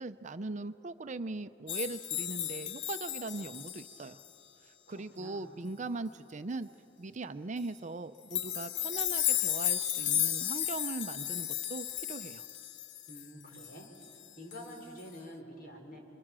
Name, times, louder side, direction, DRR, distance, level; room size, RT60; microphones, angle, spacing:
voice 1, 0.0-4.2 4.6-6.7 7.0-12.5, right 3 dB, 40° right, 11 dB, 0.6 m, -40 dB
sound 1, 1.7-4.3 8.3-14.3 14.5-14.7 15.0-15.1, left 11 dB, 70° left, 0.8 m, -34 dB
voice 2, 4.9-5.7 13.1-13.9 14.4-16.0, equal, 55° left, 1 dB, 4.9 m, -48 dB
29.5 x 24.5 x 7.5 m, 2.9 s
head